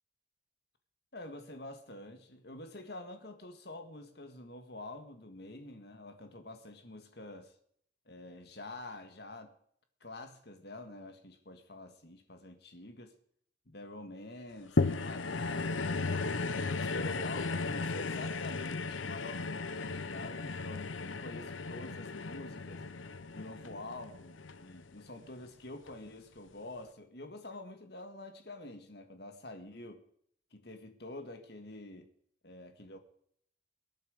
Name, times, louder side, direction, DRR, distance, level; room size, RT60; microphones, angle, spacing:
voice 1, 1.1-7.5 8.1-9.6 10.0-13.1 13.7-16.2 16.7-22.8 23.3-30.0 30.5-32.1 32.4-33.0, left 2 dB, 55° left, 1.9 m, -47 dB
sound 1, 14.8-25.3 25.9-26.0, left 3 dB, 85° left, 0.8 m, -35 dB
23.0 x 9.1 x 5.1 m
head